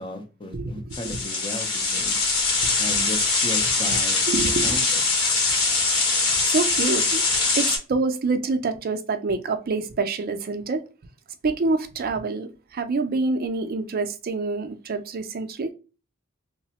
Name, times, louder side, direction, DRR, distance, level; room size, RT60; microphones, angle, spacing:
voice 1, 0.0-2.2 2.8-4.2 4.6-4.8, left 1 dB, 25° left, 0.6 m, -35 dB
voice 2, 0.5-1.2 4.3-4.8 6.3-7.2 7.6-10.8 11.4-15.7, right 3 dB, 45° right, 0.4 m, -26 dB
sound 1, 0.9-7.8, left 3 dB, 75° left, 1.0 m, -22 dB
3.1 x 2.0 x 2.8 m
head